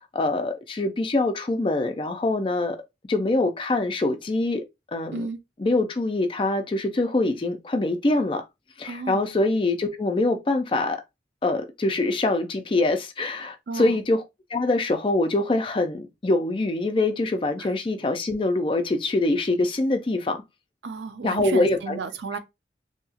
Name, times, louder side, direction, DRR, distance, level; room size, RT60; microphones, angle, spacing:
voice 1, 0.1-2.8 3.1-4.6 4.9-5.3 5.6-8.4 8.8-11.0 11.4-14.2 14.5-20.4 21.2-22.0, left 2 dB, 30° left, 0.4 m, -24 dB
voice 2, 8.8-9.4 13.7-14.0 17.6-17.7 20.8-22.4, right 4 dB, 80° right, 0.4 m, -33 dB
2.8 x 2.3 x 2.7 m
head